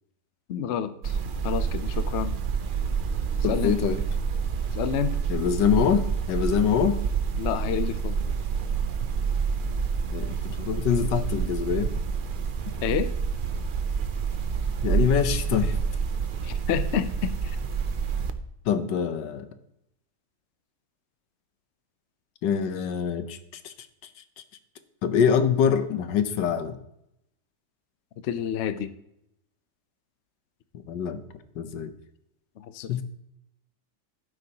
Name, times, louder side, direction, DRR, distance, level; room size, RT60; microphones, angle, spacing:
voice 1, 0.5-1.2 1.4-2.4 3.5-3.7 4.7-5.2 7.4-8.2 12.8-13.1 16.4-17.6 28.2-28.9 32.6-33.0, left 8 dB, 60° left, 12 dB, 0.7 m, -29 dB
sound 1, 1.0-18.3, right 6 dB, 85° right, 0.4 m, -28 dB
voice 2, 3.4-4.0 5.3-7.0 10.1-11.9 14.8-15.8 18.6-19.5 22.4-23.4 23.6-23.7 25.0-26.8 30.9-31.2 31.5-31.9 32.9-33.0, left 7 dB, 85° left, 10 dB, 1.5 m, -24 dB
12.0 x 9.8 x 2.9 m, 0.80 s
omnidirectional pair, 1.8 m